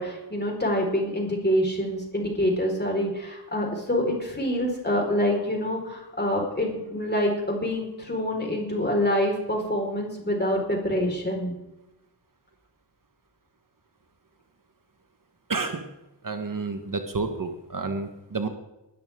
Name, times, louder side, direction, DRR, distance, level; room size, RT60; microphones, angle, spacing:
voice 1, 0.0-11.6, equal, 25° left, 0 dB, 4.7 m, -26 dB
voice 2, 15.5-15.8 16.2-18.5, right 4 dB, 45° right, 6 dB, 1.3 m, -30 dB
20.5 x 13.5 x 3.7 m, 0.94 s
wide cardioid pair, 100°, 43 cm